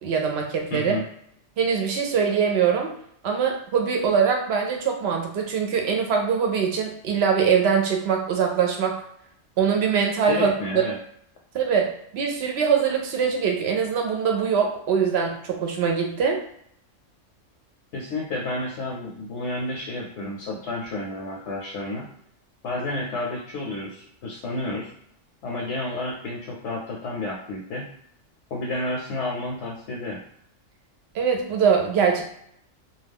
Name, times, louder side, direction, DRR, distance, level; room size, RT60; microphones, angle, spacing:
voice 1, 0.0-0.9 1.6-2.9 3.2-9.0 9.6-10.9 11.5-16.4 31.1-32.2, right 6 dB, 65° right, 2 dB, 0.7 m, -23 dB
voice 2, 0.7-1.1 10.3-11.0 17.9-22.0 22.6-24.9 25.4-27.9 28.5-30.2, left 2 dB, 70° left, -2 dB, 0.9 m, -30 dB
2.2 x 2.2 x 3.4 m, 0.69 s
omnidirectional pair, 1.3 m